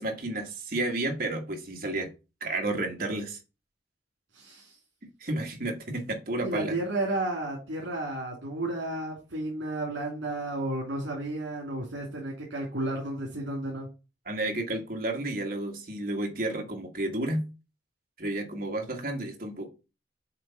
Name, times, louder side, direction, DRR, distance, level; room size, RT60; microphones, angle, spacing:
voice 1, 0.0-2.1 2.4-3.4 5.2-6.7 14.2-17.4 18.2-19.7, right 2 dB, 50° right, 2 dB, 1.6 m, -31 dB
voice 2, 4.3-4.8 6.4-13.9, right 1 dB, 85° right, -1 dB, 2.8 m, -32 dB
7.7 x 3.4 x 5.7 m, 0.30 s
head